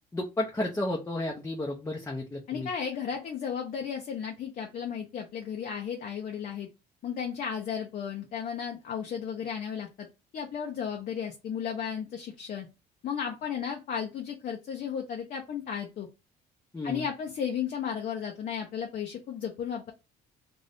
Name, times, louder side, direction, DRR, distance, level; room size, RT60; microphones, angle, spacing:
voice 1, 0.1-2.7 16.7-17.1, left 1 dB, 15° left, -1 dB, 0.6 m, -32 dB
voice 2, 2.5-6.7 7.0-10.1 10.3-12.7 13.0-16.1 16.8-19.9, left 7 dB, 50° left, 1 dB, 0.7 m, -34 dB
2.7 x 2.6 x 3.3 m, 0.27 s
cardioid pair, 110°, 17 cm